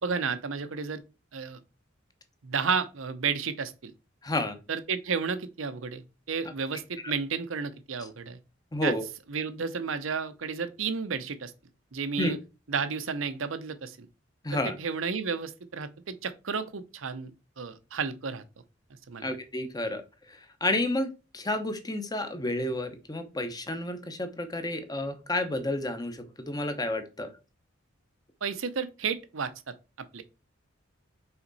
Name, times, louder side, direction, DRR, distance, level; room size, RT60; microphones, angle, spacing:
voice 1, 0.0-1.0 1.3-1.6 2.4-3.9 4.7-8.4 8.8-8.9 9.3-11.5 11.9-12.4 12.7-14.1 14.5-17.3 17.6-18.4 19.1-19.4 28.4-30.2, right 5 dB, 75° right, 0.7 m, -32 dB
voice 2, 4.2-4.6 8.7-9.1 12.2-12.3 14.4-14.8 19.2-20.0 20.3-27.3, left 1 dB, 20° left, 0.8 m, -31 dB
5.8 x 4.2 x 4.0 m
head